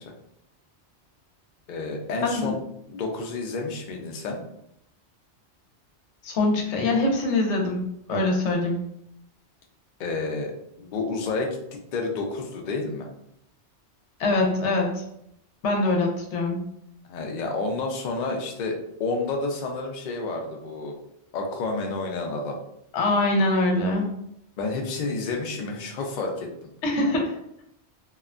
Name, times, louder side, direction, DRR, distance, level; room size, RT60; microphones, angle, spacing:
voice 1, 1.7-2.6 2.9-4.4 10.0-10.5 10.8-13.1 17.1-20.9 21.3-22.6 24.6-26.5, left 3 dB, 60° left, 2 dB, 0.5 m, -30 dB
voice 2, 2.2-2.6 6.2-8.8 14.2-15.0 15.6-16.6 22.9-24.1 26.8-27.4, left 2 dB, 90° left, 2 dB, 0.9 m, -23 dB
2.8 x 2.1 x 2.4 m, 0.76 s
omnidirectional pair, 1.2 m